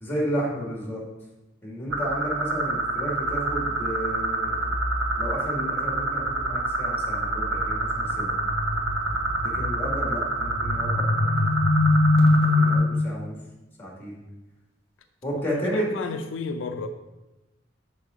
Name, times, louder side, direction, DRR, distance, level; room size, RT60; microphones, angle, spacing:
voice 1, 0.0-1.0 1.6-4.6 5.2-8.3 9.4-11.0 12.4-13.4 13.8-14.2 15.2-15.9, equal, 10° left, -3 dB, 1.8 m, -32 dB
sound 1, 1.9-12.8, equal, 80° right, 1.3 m, -24 dB
voice 2, 15.3-16.9, left 4 dB, 80° left, 7 dB, 0.4 m, -33 dB
6.4 x 3.8 x 4.9 m, 1.0 s
head